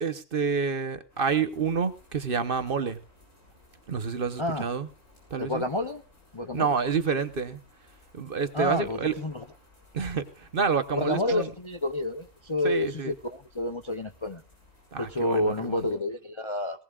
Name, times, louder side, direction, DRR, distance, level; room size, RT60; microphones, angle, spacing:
voice 1, 0.0-3.0 3.9-4.9 5.3-5.6 6.5-7.6 8.1-9.1 9.9-11.5 12.6-13.1 14.9-15.8, right 5 dB, 50° right, 12 dB, 1.0 m, -28 dB
sound 1, 1.1-15.9, left 2 dB, 90° left, 6.9 m, -58 dB
voice 2, 5.4-6.0 6.3-6.7 8.5-9.4 11.0-14.4 15.0-16.8, left 1 dB, 30° left, 7 dB, 0.6 m, -29 dB
18.5 x 18.5 x 2.4 m, 0.31 s
omnidirectional pair, 1.3 m